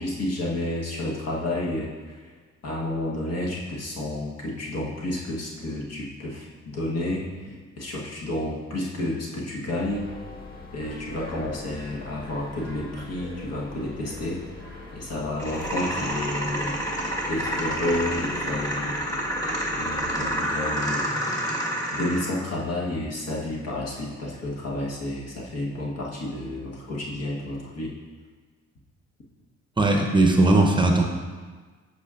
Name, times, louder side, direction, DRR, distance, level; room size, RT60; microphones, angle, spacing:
voice 1, 0.0-2.3 2.6-10.1 10.7-14.4 14.9-16.8 17.3-19.0 19.8-21.1 21.9-28.0, left 1 dB, 55° left, -3 dB, 1.3 m, -30 dB
sound 1, 9.9-20.4, left 2 dB, 30° left, 1.6 m, -41 dB
sound 2, 15.4-22.4, equal, 10° left, 1.5 m, -28 dB
voice 2, 29.8-31.0, right 2 dB, 15° right, 2 dB, 0.7 m, -18 dB
8.1 x 6.2 x 2.5 m, 1.4 s
cardioid pair, 90°, 30 cm